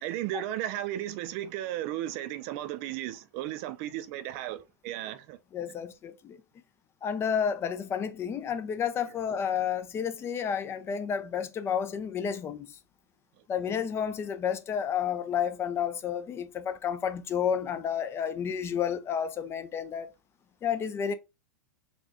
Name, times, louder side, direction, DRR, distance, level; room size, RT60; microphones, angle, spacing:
voice 1, 0.0-5.4, right 13 dB, 55° right, 0.4 m, -35 dB
voice 2, 5.5-6.4 7.0-12.7 13.5-20.1 20.6-21.1, left 8 dB, 25° left, 0.4 m, -31 dB
4.1 x 2.3 x 2.8 m
hypercardioid pair, 115°, 9 cm